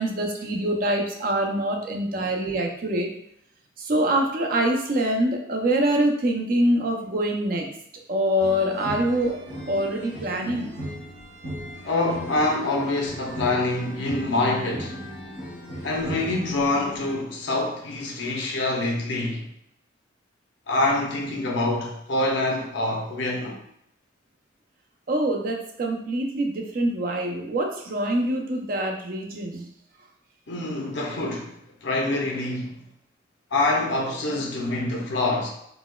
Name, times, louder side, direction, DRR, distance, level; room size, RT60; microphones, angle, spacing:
voice 1, 0.0-3.1 3.8-7.7 8.1-9.4 9.7-10.7 25.1-29.6, right 1 dB, 45° right, 0.5 m, -25 dB
sound 1, 8.4-17.1, equal, 70° right, 1.0 m, -37 dB
voice 2, 11.8-15.0 15.8-19.5 20.7-23.6 30.5-32.8 33.5-35.5, left 2 dB, 65° left, 0.6 m, -26 dB
4.0 x 2.2 x 2.3 m
head